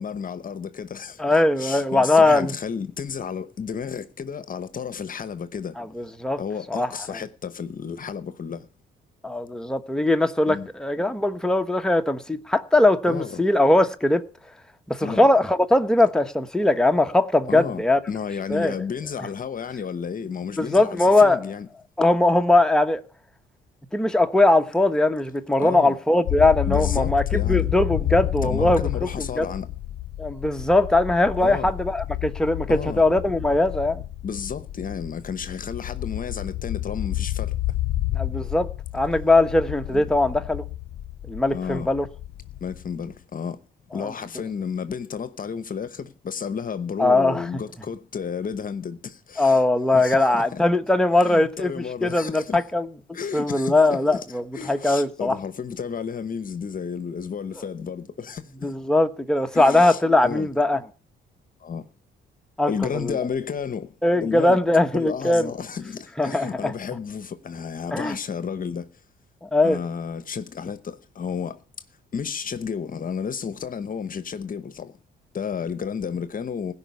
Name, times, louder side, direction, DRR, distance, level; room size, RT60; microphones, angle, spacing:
voice 1, 0.0-5.8 6.4-8.7 10.5-10.7 13.0-13.4 15.0-15.3 17.5-21.7 25.6-26.0 26.7-27.7 28.4-29.7 31.4-31.7 32.7-33.0 34.2-37.6 39.9-40.1 41.5-41.9 42.6-43.6 43.9-49.6 49.9-50.6 51.2-52.6 53.1-58.7 59.5-60.5 61.6-61.8 62.7-63.9 64.2-64.6 64.9-68.9 69.6-71.6 72.1-75.0 75.3-76.7, left 6 dB, 45° left, 1.0 m, -32 dB
voice 2, 1.2-2.5 5.8-6.4 6.7-6.9 9.2-14.2 14.9-18.0 18.5-18.7 20.6-21.4 22.0-23.0 23.9-28.8 29.4-29.5 30.2-34.0 38.1-38.7 38.9-40.6 41.3-42.1 44.0-44.1 47.0-47.5 49.4-52.9 53.3-55.4 58.6-60.8 62.6-62.7 63.0-63.2 64.0-65.5 66.2-66.7 67.9-68.2 69.4-69.8, left 2 dB, 5° left, 1.1 m, -20 dB
sound 1, 26.3-43.1, left 14 dB, 75° left, 0.6 m, -30 dB
16.0 x 5.5 x 9.6 m
cardioid pair, 90°, 20 cm